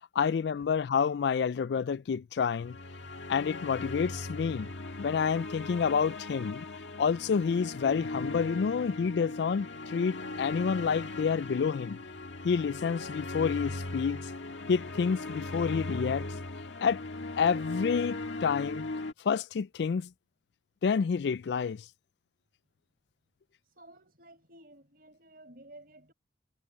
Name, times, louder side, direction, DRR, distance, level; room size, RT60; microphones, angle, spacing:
voice 1, 0.2-2.8 3.3-4.7 5.0-6.6 7.0-12.0 12.4-14.2 14.7-16.3 16.8-17.0 17.4-18.9 19.2-20.1 20.8-21.8, left 6 dB, 65° left, 0.3 m, -29 dB
sound 1, 2.6-19.1, left 2 dB, 80° left, 1.7 m, -38 dB
voice 2, 23.7-26.1, right 1 dB, 50° right, 5.1 m, -54 dB
head